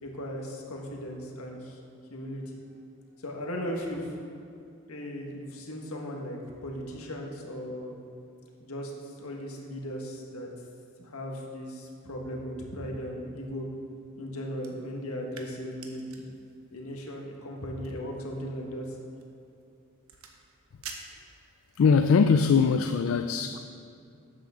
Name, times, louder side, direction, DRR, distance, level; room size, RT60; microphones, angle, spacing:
voice 1, 0.0-1.8 2.1-2.6 3.2-4.2 4.9-6.4 6.6-7.9 8.6-10.5 11.0-13.6 14.2-16.2 16.7-19.0, equal, 85° left, 0 dB, 1.6 m, -37 dB
sound 1, 14.5-21.9, right 5 dB, 75° right, 1.1 m, -50 dB
voice 2, 21.8-23.6, left 5 dB, 65° left, 8 dB, 0.3 m, -21 dB
12.5 x 8.7 x 3.7 m, 2.5 s
head